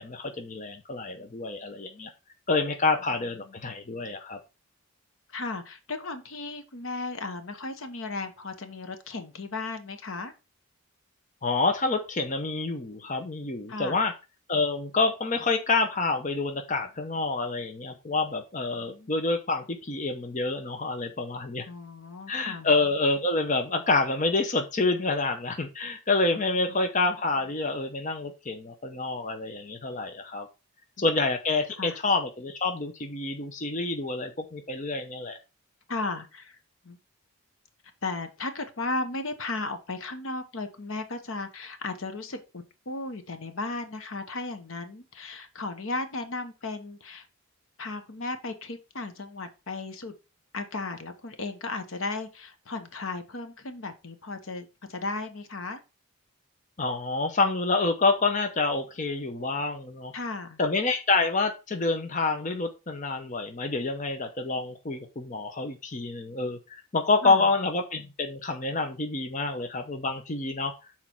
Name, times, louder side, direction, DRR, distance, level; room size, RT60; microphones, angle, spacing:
voice 1, 0.0-2.1 2.5-4.4 11.4-14.1 14.5-21.7 22.3-30.5 31.0-35.4 56.8-60.1 60.6-70.7, left 3 dB, 35° left, 5 dB, 0.7 m, -27 dB
voice 2, 3.1-3.5 5.3-10.3 13.7-14.0 18.8-19.1 21.7-22.7 26.7-26.8 31.0-31.1 31.8-32.0 35.9-36.6 36.8-37.0 38.0-47.3 47.8-50.1 50.5-55.8 60.1-60.6 67.2-67.5, left 3 dB, 65° left, 9 dB, 1.0 m, -35 dB
6.2 x 4.3 x 4.4 m, 0.28 s
head